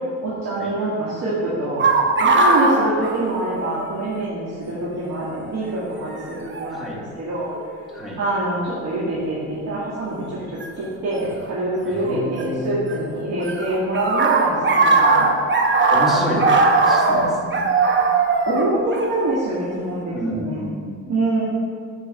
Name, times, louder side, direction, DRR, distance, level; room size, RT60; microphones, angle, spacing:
voice 1, 0.2-1.9 2.2-7.5 8.2-15.3 16.1-16.4 18.4-20.6 21.1-21.4, right 1 dB, 65° right, -9 dB, 2.2 m, -25 dB
sound 1, 1.8-3.9 4.2-4.3 5.2-5.5 6.5-6.7 7.5-8.0 10.6-10.7 12.1-12.9 13.2-19.8, right 3 dB, 40° right, 1.1 m, -19 dB
voice 2, 6.7-7.0 7.9-8.2 11.9-12.9 15.9-16.4 16.8-17.7 20.1-21.1, left 1 dB, ahead, -5 dB, 2.3 m, -29 dB
7.6 x 5.1 x 6.9 m, 2.1 s
cardioid pair, 90°, 30 cm